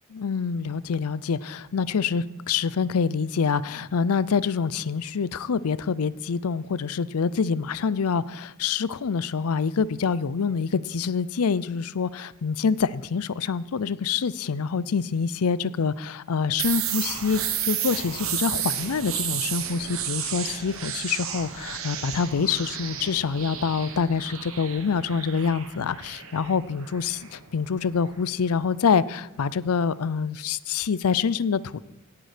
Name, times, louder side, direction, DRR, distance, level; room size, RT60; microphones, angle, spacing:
voice 1, 0.1-31.8, left 6 dB, 75° left, 18 dB, 0.5 m, -26 dB
sound 1, 16.6-28.2, right 9 dB, 65° right, 1.3 m, -32 dB
17.5 x 8.5 x 5.0 m, 1.1 s
head